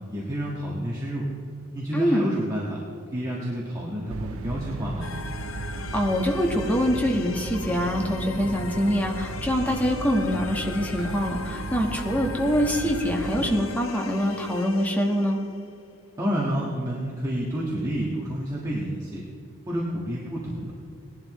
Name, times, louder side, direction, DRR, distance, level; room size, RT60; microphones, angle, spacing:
voice 1, 0.1-1.3 1.7-2.8 3.1-5.1 16.2-19.2 19.7-20.7, equal, 15° right, -5 dB, 1.6 m, -29 dB
voice 2, 1.9-2.2 5.7-15.4, equal, 5° left, 0 dB, 1.4 m, -24 dB
sound 1, 4.1-13.6, right 3 dB, 75° right, 0.5 m, -35 dB
sound 2, 5.0-15.8, left 4 dB, 65° left, 0.7 m, -38 dB
19.0 x 11.5 x 3.1 m, 2.6 s
head